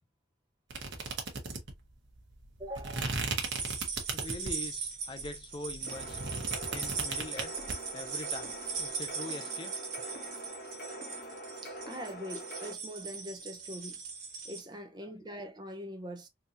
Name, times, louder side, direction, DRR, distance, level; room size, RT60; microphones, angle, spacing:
sound 1, 0.7-4.7 5.2-7.7, right 4 dB, 80° right, 1.0 m, -36 dB
voice 1, 2.6-3.3 11.6-14.0 14.4-16.3, equal, 25° right, 0.6 m, -43 dB
sound 2, 3.4-14.6, right 5 dB, 45° right, 1.4 m, -39 dB
voice 2, 4.1-6.2 6.7-7.5 7.9-9.7 15.0-15.3, left 2 dB, 25° left, 0.4 m, -43 dB
sound 3, 5.9-12.7, equal, 55° left, 1.4 m, -44 dB
3.7 x 2.7 x 2.6 m
head